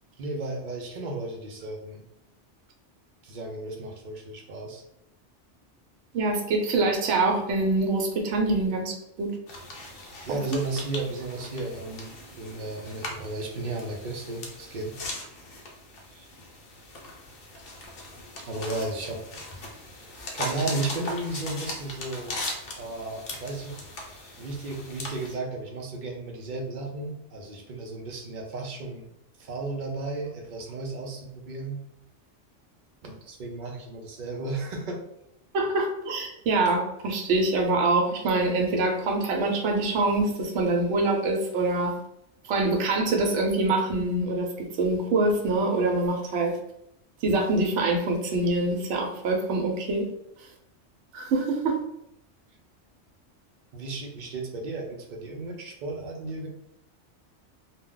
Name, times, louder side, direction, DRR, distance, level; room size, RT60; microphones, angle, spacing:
voice 1, 0.2-2.0 3.2-4.8 10.3-15.3 18.4-19.2 19.5-19.7 20.1-22.4 22.8-23.8 24.1-29.1 29.4-31.8 33.0-35.0 53.7-56.5, right 2 dB, 55° right, 2 dB, 0.6 m, -34 dB
voice 2, 6.1-9.3 10.3-10.4 35.5-41.9 42.5-46.5 47.2-50.1 51.1-51.8, right 2 dB, 80° right, 1 dB, 0.9 m, -25 dB
sound 1, 9.5-25.3, left 2 dB, 55° left, 0.8 m, -39 dB
2.2 x 2.1 x 3.6 m, 0.80 s
omnidirectional pair, 1.2 m